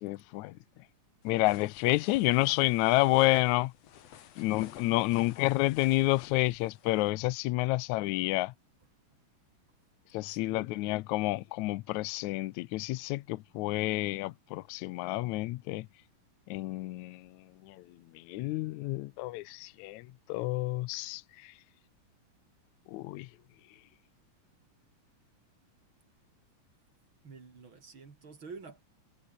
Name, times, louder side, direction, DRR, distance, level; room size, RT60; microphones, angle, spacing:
voice 1, 0.0-0.6 1.2-3.7 4.4-8.5 10.1-15.9 16.5-17.3 17.6-17.8 18.3-21.2 22.9-23.3, left 20 dB, 75° left, 1.9 m, -29 dB
sound 1, 1.2-7.1, left 10 dB, 60° left, 2.4 m, -52 dB
voice 2, 10.3-10.7 27.2-28.8, right 4 dB, 40° right, 3.4 m, -49 dB
omnidirectional pair, 3.7 m